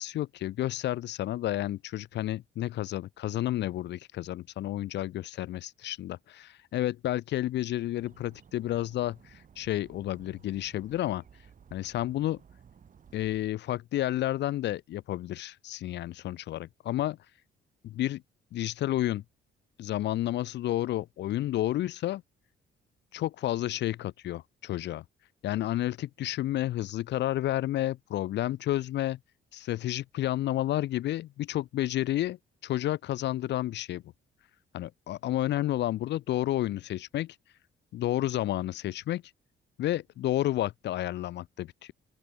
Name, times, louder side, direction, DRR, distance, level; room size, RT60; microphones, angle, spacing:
voice 1, 0.0-11.2 11.7-12.4 13.1-17.2 17.8-18.2 18.5-19.2 19.8-22.2 23.1-25.0 25.4-29.2 29.5-32.4 32.6-34.0 34.7-37.4 37.9-39.2 39.8-41.9, left 14 dB, 65° left, 0.4 m, -31 dB
sound 1, 8.0-13.5, right 7 dB, 40° right, 1.2 m, -56 dB
open air
cardioid pair, 90°, 20 cm